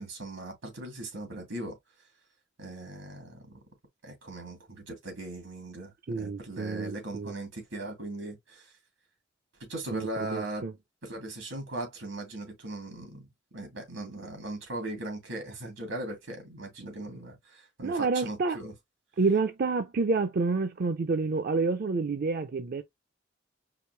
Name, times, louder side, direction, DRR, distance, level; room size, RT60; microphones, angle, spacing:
voice 1, 0.0-1.8 2.6-3.6 4.0-8.7 9.6-10.6 11.0-13.3 13.5-18.7, right 1 dB, 90° right, 2.6 m, -39 dB
voice 2, 6.1-7.3 9.9-10.7 17.8-18.6 19.2-22.8, right 4 dB, 50° right, 0.5 m, -28 dB
4.9 x 2.6 x 3.2 m
head